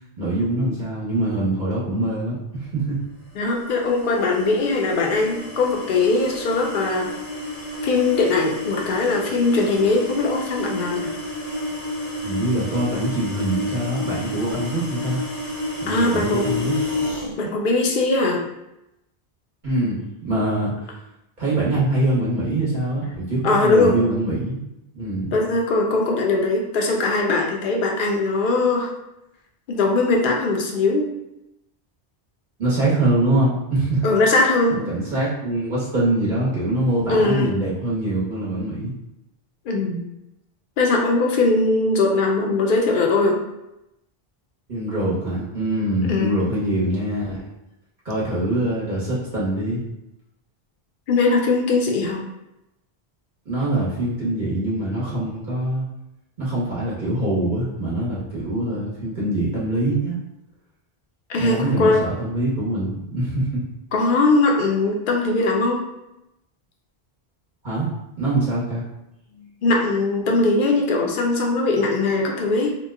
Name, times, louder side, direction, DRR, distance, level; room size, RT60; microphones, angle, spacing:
voice 1, 0.2-3.0 12.2-15.2 15.8-16.7 19.6-20.7 21.4-24.6 24.9-25.3 32.6-34.0 34.7-38.9 44.7-47.5 48.0-49.8 53.4-55.8 56.4-60.2 61.4-63.6 67.6-67.9 68.2-68.8 69.3-69.5, right 1 dB, 50° right, -7 dB, 1.1 m, -24 dB
voice 2, 3.3-7.1 7.8-11.1 15.9-16.6 17.4-18.4 23.4-24.0 25.3-28.9 29.7-31.1 34.0-34.8 37.1-37.5 39.7-40.0 40.8-43.4 46.1-46.4 51.1-52.2 61.3-62.0 63.9-65.8 69.6-72.8, left 3 dB, 60° left, 0 dB, 0.7 m, -20 dB
sound 1, 3.4-17.3, left 1 dB, 85° left, 1.3 m, -31 dB
2.9 x 2.1 x 3.5 m, 0.89 s
omnidirectional pair, 1.0 m